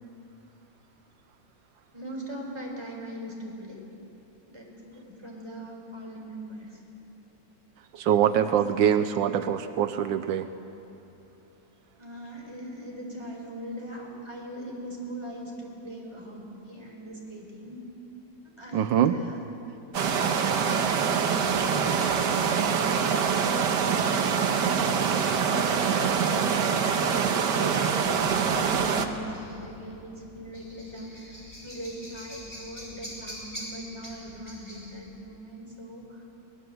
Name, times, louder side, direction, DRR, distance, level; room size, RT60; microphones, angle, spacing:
voice 1, 1.9-3.8 4.5-6.8 8.1-8.6 12.0-17.8 18.6-19.4 23.4-24.6 25.1-31.3 31.6-36.2, right 1 dB, 15° right, -2 dB, 4.6 m, -40 dB
voice 2, 7.9-10.5 18.7-19.1 20.9-21.0, right 9 dB, 85° right, 9 dB, 1.4 m, -24 dB
sound 1, 19.9-29.1, right 6 dB, 70° right, 1.7 m, -25 dB
sound 2, 28.0-34.9, equal, 10° left, 5.4 m, -45 dB
23.5 x 19.5 x 7.9 m, 2.9 s
omnidirectional pair, 2.0 m